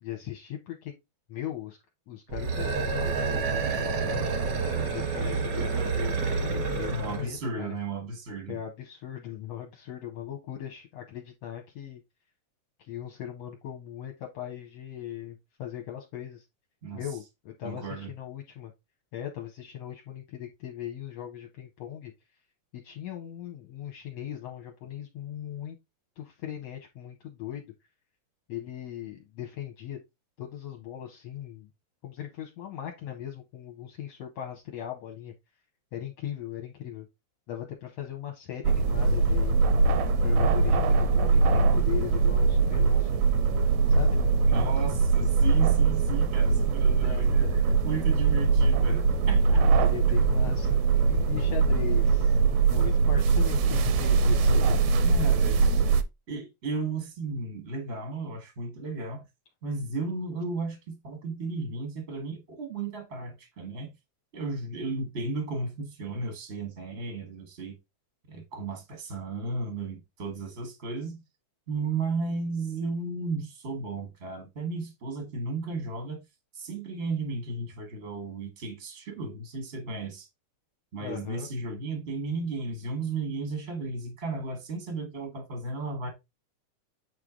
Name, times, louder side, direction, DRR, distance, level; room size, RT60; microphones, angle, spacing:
voice 1, 0.0-0.9 1.3-1.8 2.1-4.3 4.9-7.8 8.5-12.0 12.8-16.5 16.9-18.7 19.1-22.1 22.7-25.8 26.2-27.7 28.5-30.0 30.4-31.7 32.0-35.3 35.9-37.1 37.5-39.6 40.2-43.2 43.9-44.2 47.0-47.6 49.8-52.4 52.7-55.1 81.0-81.5, left 11 dB, 70° left, 1.8 m, -39 dB
sound 1, 2.3-7.3, right 4 dB, 60° right, 1.1 m, -28 dB
voice 2, 6.9-8.6 16.8-17.0 17.6-18.1 44.5-49.6 55.0-55.9 56.3-59.2 59.6-63.9 64.3-67.8 68.3-71.2 71.7-76.2 76.5-80.3 80.9-86.1, right 3 dB, 40° right, 0.9 m, -34 dB
sound 2, 38.6-56.0, right 4 dB, 75° right, 1.6 m, -22 dB
8.2 x 3.3 x 3.7 m
omnidirectional pair, 3.5 m